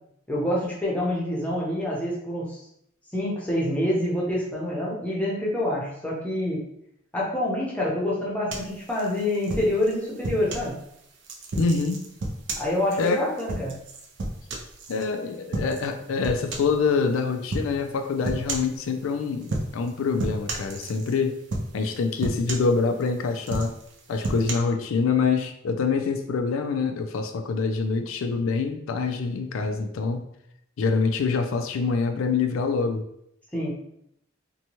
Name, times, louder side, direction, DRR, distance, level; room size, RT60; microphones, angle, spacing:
voice 1, 0.3-2.6 3.1-6.6 7.1-10.7 12.6-13.8 33.5-33.7, left 1 dB, 5° left, -6 dB, 0.7 m, -26 dB
sound 1, 8.5-10.7 11.2-15.1 15.5-15.9 16.2-16.8 17.5-17.7 18.2-18.8 19.4-19.9 20.2-21.2 21.5-21.9 22.2-23.1 23.4-24.5, right 2 dB, 60° right, 0.5 m, -32 dB
voice 2, 11.6-12.1 13.0-13.3 14.9-21.4 21.7-23.7 24.1-30.3 30.8-33.0, left 4 dB, 85° left, 7 dB, 0.4 m, -25 dB
2.7 x 2.2 x 2.9 m, 0.74 s
head